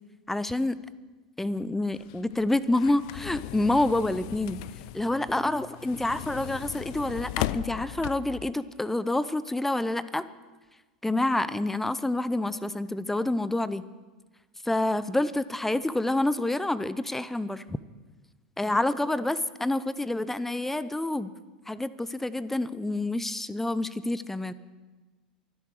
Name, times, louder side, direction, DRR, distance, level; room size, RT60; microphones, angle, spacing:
voice 1, 0.3-0.8 1.4-4.6 4.9-10.3 11.0-13.8 14.6-17.8 18.6-21.3 21.7-24.5, left 2 dB, 5° left, 16 dB, 0.7 m, -28 dB
sound 1, 1.9-8.5, left 17 dB, 55° left, 0.4 m, -37 dB
23.5 x 10.5 x 4.8 m, 1.3 s
figure-of-eight pair, 85°, 4 cm